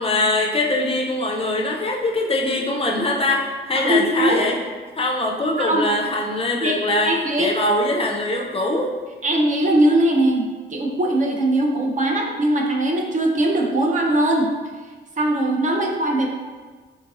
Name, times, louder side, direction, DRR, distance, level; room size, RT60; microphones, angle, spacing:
voice 1, 0.0-4.6 4.9-7.1 7.4-8.9, left 2 dB, 30° left, 0 dB, 0.4 m, -22 dB
voice 2, 3.7-4.4 5.6-5.9 6.6-7.5 9.2-14.5 15.2-16.3, right 1 dB, 40° right, 0 dB, 0.5 m, -20 dB
3.8 x 2.5 x 2.8 m, 1.4 s
cardioid pair, 115°, 20 cm